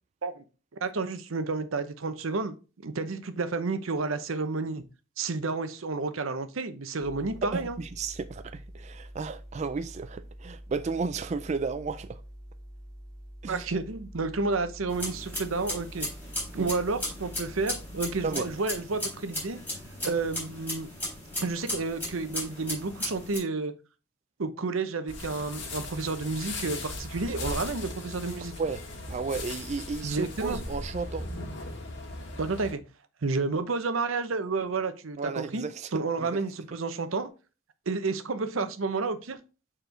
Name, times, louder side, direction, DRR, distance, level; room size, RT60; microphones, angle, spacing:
voice 1, 0.8-2.6 2.8-4.8 5.2-7.8 13.5-16.1 16.5-19.6 20.0-20.9 21.4-23.7 24.4-28.5 30.0-30.6 32.4-32.8 33.2-35.6 35.9-37.3 37.9-39.4, right 3 dB, 90° right, 0.8 m, -30 dB
sound 1, 7.0-18.3, equal, 15° right, 2.1 m, -46 dB
voice 2, 7.4-12.2 13.4-13.7 16.6-16.7 18.2-18.5 28.6-28.8 29.1-31.3 35.2-35.9 36.2-36.3, right 4 dB, 35° right, 0.3 m, -33 dB
sound 2, 14.9-23.4, left 1 dB, 10° left, 3.9 m, -36 dB
sound 3, 25.1-32.7, left 2 dB, 60° left, 1.7 m, -38 dB
6.9 x 4.4 x 3.8 m
head